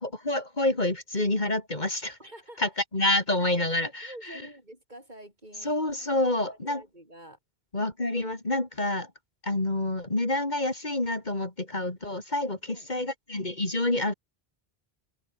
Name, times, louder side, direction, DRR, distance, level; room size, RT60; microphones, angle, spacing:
voice 1, 0.0-2.2 2.6-4.4 5.6-6.8 7.7-9.1 9.4-14.1, left 2 dB, 45° left, 3.3 m, -28 dB
voice 2, 2.2-2.7 3.1-7.4 12.4-12.9, right 1 dB, 45° right, 8.2 m, -48 dB
omnidirectional pair, 1.0 m